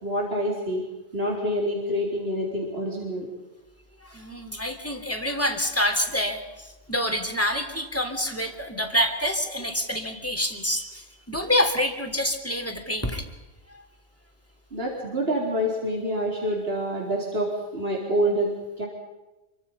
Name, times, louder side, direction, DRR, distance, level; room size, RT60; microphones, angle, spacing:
voice 1, 0.0-0.9 1.1-3.3 14.7-18.5 18.8-18.9, equal, 50° right, -2 dB, 4.4 m, -27 dB
voice 2, 4.0-13.3, equal, 10° left, 5 dB, 3.2 m, -27 dB
28.5 x 24.5 x 5.6 m, 1.1 s
omnidirectional pair, 1.3 m